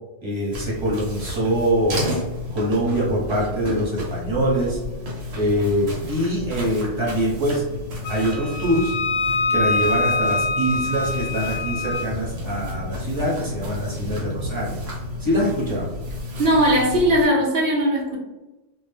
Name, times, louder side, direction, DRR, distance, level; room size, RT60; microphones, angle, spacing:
voice 1, 0.2-2.1 2.5-4.8 5.3-7.7 8.1-9.0 9.5-14.8 15.2-15.9, equal, 25° right, -6 dB, 0.9 m, -24 dB
sound 1, 0.5-17.3, left 2 dB, 85° right, 1.1 m, -31 dB
Wind instrument woodwind instrument, 8.0-12.1, left 2 dB, 60° left, 0.7 m, -24 dB
voice 2, 16.4-18.2, equal, 60° right, -1 dB, 0.7 m, -19 dB
2.3 x 2.0 x 3.2 m, 1.1 s
omnidirectional pair, 1.3 m